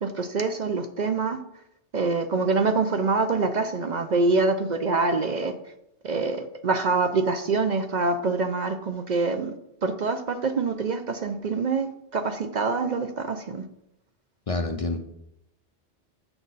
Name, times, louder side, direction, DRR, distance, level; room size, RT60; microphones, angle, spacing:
voice 1, 0.0-1.4 1.9-5.5 6.0-9.5 9.8-13.6, right 3 dB, 55° right, 7 dB, 0.5 m, -25 dB
voice 2, 14.5-15.0, left 2 dB, 45° left, 5 dB, 0.4 m, -27 dB
8.4 x 5.9 x 4.0 m, 0.81 s
omnidirectional pair, 1.3 m